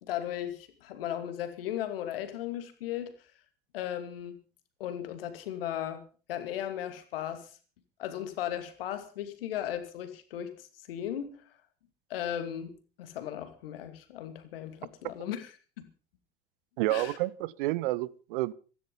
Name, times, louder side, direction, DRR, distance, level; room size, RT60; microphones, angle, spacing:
voice 1, 0.0-3.1 3.7-4.4 4.8-6.0 6.3-7.5 8.0-11.3 12.1-15.9 16.9-17.2, left 11 dB, 70° left, 2.4 m, -36 dB
voice 2, 16.8-18.5, right 18 dB, 60° right, 0.7 m, -29 dB
16.0 x 14.5 x 5.4 m
figure-of-eight pair, 65°, 30 cm